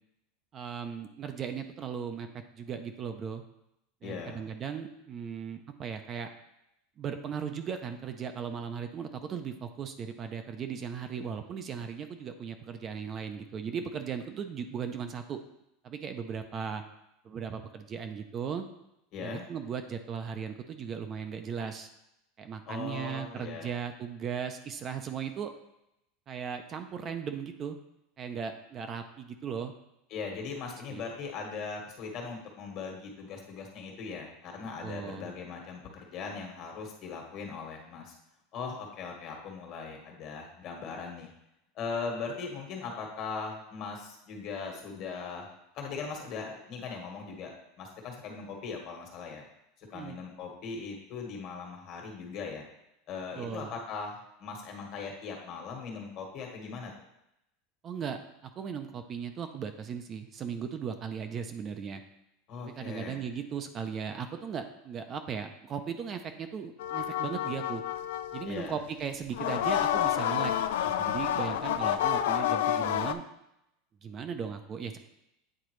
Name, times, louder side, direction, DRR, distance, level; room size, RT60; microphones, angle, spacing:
voice 1, 0.5-3.4 4.0-6.3 7.0-15.4 15.8-16.8 17.2-18.7 19.2-21.9 22.4-25.5 26.3-27.8 28.2-29.7 30.9-31.0 34.8-35.3 49.8-50.2 53.4-53.7 57.8-62.0 62.6-67.8 68.3-70.5 70.8-73.2 74.0-75.0, right 7 dB, 30° right, 7 dB, 0.5 m, -37 dB
voice 2, 4.0-4.4 19.1-19.4 22.7-23.7 30.1-38.1 38.5-41.3 41.7-45.5 45.7-49.4 49.8-52.6 53.1-56.9 62.5-63.2 68.4-68.7, left 5 dB, 50° left, 1 dB, 1.5 m, -39 dB
sound 1, 66.8-68.6 69.3-73.1, left 11 dB, 80° left, 0.3 m, -29 dB
8.6 x 3.8 x 3.1 m, 0.84 s
supercardioid pair, 130°, 0 cm